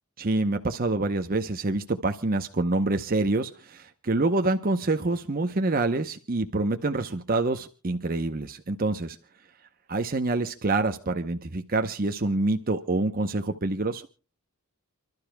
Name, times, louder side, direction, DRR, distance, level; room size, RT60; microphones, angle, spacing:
voice 1, 0.2-9.2 9.9-14.1, right 2 dB, 40° right, 6 dB, 0.8 m, -26 dB
29.5 x 12.5 x 2.2 m, 0.34 s
head